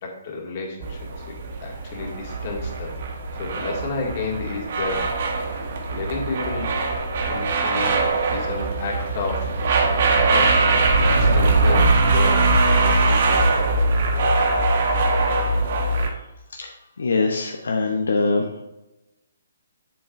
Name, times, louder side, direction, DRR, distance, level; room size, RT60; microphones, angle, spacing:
voice 1, 0.0-3.0 3.4-5.1 5.9-6.8 7.3-8.0 8.3-9.5 10.3-10.9 11.2-13.8, left 3 dB, 45° left, 0 dB, 2.1 m, -31 dB
sound 1, 0.8-16.1, right 3 dB, 55° right, 1.2 m, -21 dB
voice 2, 17.0-18.4, left 3 dB, 80° left, 2 dB, 0.8 m, -22 dB
7.6 x 7.0 x 2.6 m, 0.98 s
hypercardioid pair, 140°, 0 cm